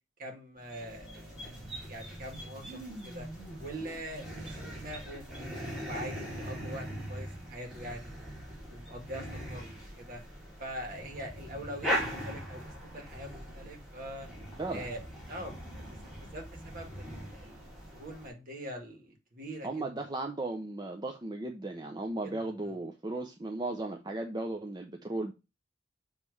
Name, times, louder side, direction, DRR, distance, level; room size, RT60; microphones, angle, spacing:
voice 1, 0.2-3.3 3.6-8.3 8.7-10.2 10.6-14.3 14.7-15.0 15.3-19.9 22.2-22.7, equal, 50° right, 2.0 m, -44 dB
sound 1, 0.6-18.3, equal, 5° right, 2.8 m, -41 dB
voice 2, 19.6-25.3, right 2 dB, 25° right, 0.6 m, -36 dB
7.4 x 3.2 x 4.7 m
head